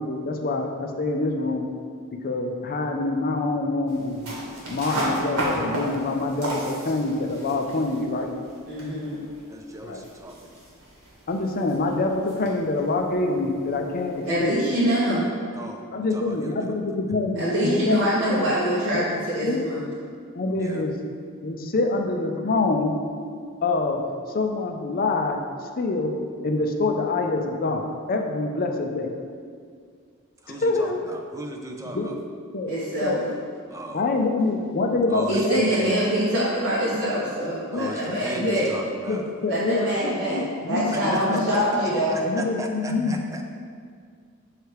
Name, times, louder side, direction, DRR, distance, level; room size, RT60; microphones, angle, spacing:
voice 1, 0.0-1.7 2.2-4.3 4.7-8.3 9.8-10.0 11.3-14.5 15.9-18.0 18.2-18.5 18.9-19.6 20.4-20.9 21.4-23.0 23.6-24.1 24.3-25.4 25.8-26.1 26.4-29.1 30.5-31.0 31.9-32.1 32.5-32.7 33.0-33.2 33.9-35.8 36.9-37.1 37.7-38.7 39.1-41.5 42.2-43.2, left 3 dB, 40° left, 3 dB, 0.5 m, -26 dB
sound 1, 3.9-14.5, right 1 dB, 90° right, 1.5 m, -35 dB
voice 2, 8.7-9.2 14.2-15.3 17.3-19.9 32.7-33.2 35.3-38.8 39.5-42.1, right 1 dB, 60° right, -9 dB, 1.3 m, -24 dB
voice 3, 9.5-10.5 15.5-15.8 16.1-16.8 20.5-20.9 30.4-32.1 33.7-34.0 35.1-36.0 37.7-39.7 41.1-43.4, right 1 dB, 15° right, 2 dB, 0.4 m, -36 dB
6.5 x 3.3 x 4.6 m, 2.1 s
head